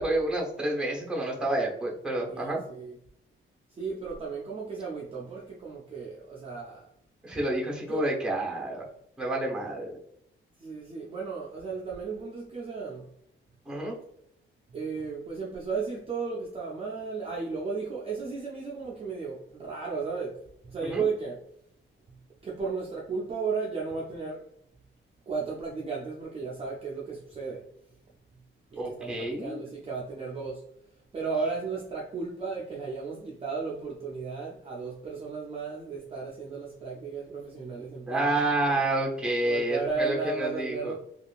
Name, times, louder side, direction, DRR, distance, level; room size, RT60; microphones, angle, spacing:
voice 1, 0.0-2.6 7.2-8.8 9.2-9.9 13.7-14.0 20.8-21.0 28.8-29.6 38.1-40.9, right 1 dB, 5° right, 0.8 m, -29 dB
voice 2, 2.3-3.0 3.8-6.9 7.9-8.0 10.6-13.1 14.7-21.4 22.4-24.5 25.3-27.7 28.7-30.7 31.1-38.3 38.6-38.8 39.4-40.9, right 4 dB, 25° right, 0.4 m, -34 dB
3.6 x 2.4 x 2.3 m
wide cardioid pair, 175°, 21 cm